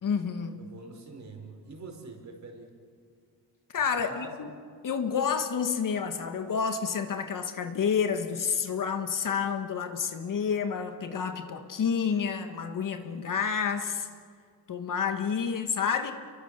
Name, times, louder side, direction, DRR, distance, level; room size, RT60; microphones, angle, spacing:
voice 1, 0.0-0.6 3.7-4.5 4.8-14.1 14.7-16.1, left 6 dB, 50° left, 7 dB, 1.7 m, -29 dB
voice 2, 0.6-2.7 4.0-4.5, right 3 dB, 40° right, 3 dB, 4.9 m, -44 dB
30.0 x 23.0 x 6.9 m, 2.1 s
cardioid pair, 135°, 42 cm